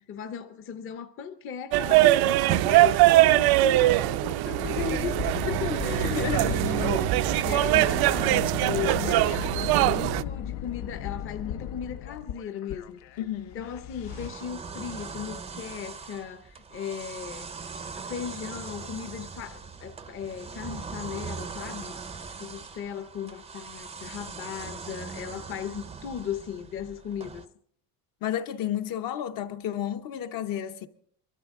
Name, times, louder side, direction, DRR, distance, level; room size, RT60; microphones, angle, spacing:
voice 1, 0.1-13.0 13.5-17.5 18.0-21.9 22.4-27.5, left 8 dB, 30° left, 0.7 m, -37 dB
sound 1, 1.7-10.2, right 16 dB, 65° right, 0.5 m, -22 dB
sound 2, 4.6-14.3, left 10 dB, 85° left, 0.9 m, -36 dB
voice 2, 5.7-6.8 13.2-13.7 28.2-30.9, left 10 dB, 55° left, 0.9 m, -32 dB
sound 3, 14.0-27.4, right 5 dB, 15° right, 0.5 m, -41 dB
23.5 x 12.5 x 3.6 m
cardioid pair, 165°, 41 cm